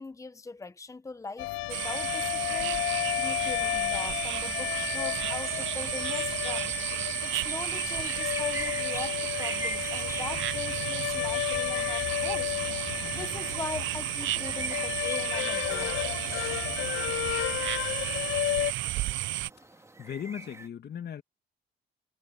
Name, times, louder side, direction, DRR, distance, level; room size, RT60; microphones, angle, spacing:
voice 1, 0.0-2.8 3.2-6.7 7.2-12.6 13.1-16.0, left 3 dB, 15° left, 0.9 m, -41 dB
sound 1, 1.4-18.7, left 18 dB, 90° left, 0.4 m, -32 dB
sound 2, 1.7-19.5, right 16 dB, 75° right, 0.4 m, -33 dB
sound 3, 5.4-20.7, right 1 dB, 15° right, 2.0 m, -45 dB
voice 2, 20.0-21.2, left 8 dB, 55° left, 2.2 m, -37 dB
cardioid pair, 90°, 20 cm